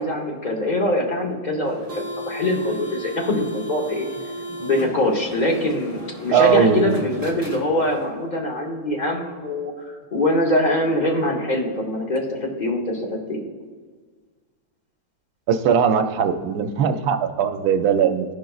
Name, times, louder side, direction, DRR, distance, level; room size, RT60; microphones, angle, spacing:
voice 1, 0.0-4.1 4.6-9.7 10.1-13.5, left 1 dB, 35° left, 0 dB, 0.9 m, -23 dB
sound 1, 1.6-8.1, right 1 dB, 15° right, 1.0 m, -35 dB
voice 2, 6.3-7.0 15.5-18.3, right 7 dB, 80° right, 7 dB, 1.1 m, -19 dB
14.0 x 5.1 x 2.3 m, 1.5 s
omnidirectional pair, 1.7 m